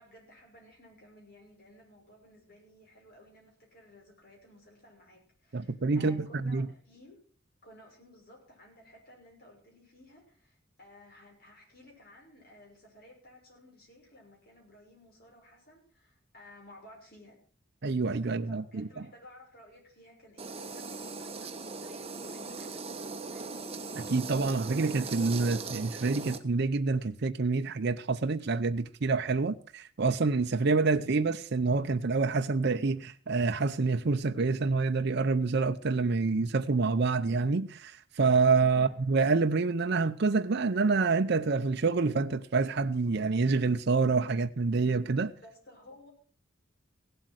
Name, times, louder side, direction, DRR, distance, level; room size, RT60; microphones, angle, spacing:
voice 1, 0.0-7.2 7.6-17.4 18.2-23.7 38.7-39.1 45.2-46.1, left 1 dB, 50° left, 5.9 m, -56 dB
voice 2, 5.5-6.7 17.8-18.9 24.0-45.3, right 4 dB, 55° right, 0.6 m, -27 dB
sound 1, 20.4-26.4, right 4 dB, 30° right, 1.1 m, -39 dB
16.5 x 7.9 x 6.4 m
head